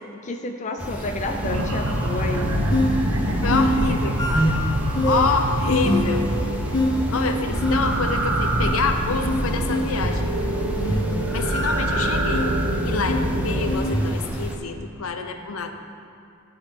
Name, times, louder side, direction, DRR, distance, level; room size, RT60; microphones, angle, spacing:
voice 1, 0.2-2.6, left 2 dB, 35° left, 4 dB, 0.5 m, -30 dB
sound 1, 0.8-14.6, equal, 5° right, 0.7 m, -32 dB
sound 2, 1.4-13.7, right 1 dB, 90° right, 1.1 m, -27 dB
sound 3, 2.2-14.3, left 1 dB, 20° left, 1.1 m, -25 dB
voice 2, 3.4-4.6 5.0-6.3 7.1-10.2 10.9-11.0 11.3-12.5 12.8-15.7, left 4 dB, 70° left, 6 dB, 0.7 m, -27 dB
11.5 x 4.0 x 7.4 m, 2.5 s
head